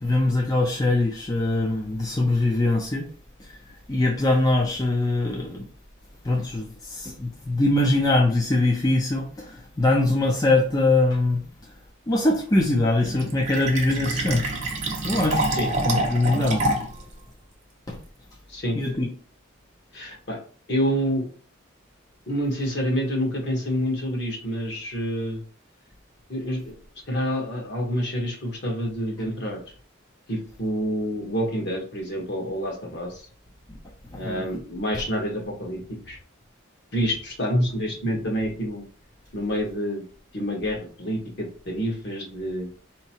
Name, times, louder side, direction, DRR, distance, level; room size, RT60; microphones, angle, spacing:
voice 1, 0.0-3.1 3.4-5.7 6.2-11.7 12.1-14.6 14.9-15.5 15.8-16.7 17.9-18.0 18.7-19.1 33.7-33.8 34.1-34.4, left 2 dB, 20° left, 0.4 m, -23 dB
Fill (with liquid), 13.0-17.0, right 1 dB, 35° right, 0.8 m, -27 dB
voice 2, 19.9-20.4 20.7-21.3 22.3-25.4 26.3-26.7 27.1-29.6 30.3-33.3 34.1-36.2 36.9-38.8 39.3-40.0 40.3-42.7, equal, 55° left, 1.2 m, -27 dB
4.4 x 2.9 x 2.8 m
head